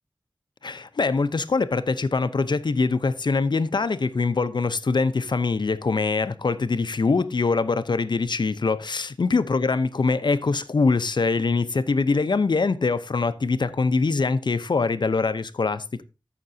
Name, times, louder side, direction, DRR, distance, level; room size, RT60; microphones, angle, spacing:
voice 1, 0.6-16.0, left 4 dB, 70° left, 0.7 m, -23 dB
14.5 x 5.9 x 2.7 m
wide cardioid pair, 45°, 8 cm